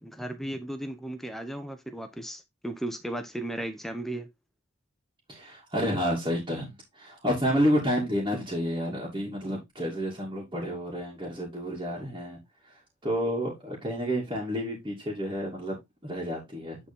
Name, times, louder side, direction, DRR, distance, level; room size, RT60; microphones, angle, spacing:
voice 1, 0.0-4.3, right 1 dB, ahead, 0.8 m, -35 dB
voice 2, 5.3-12.4 12.7-12.8 13.0-15.8 16.0-16.8, equal, 20° right, 2.6 m, -30 dB
9.6 x 4.3 x 3.6 m
head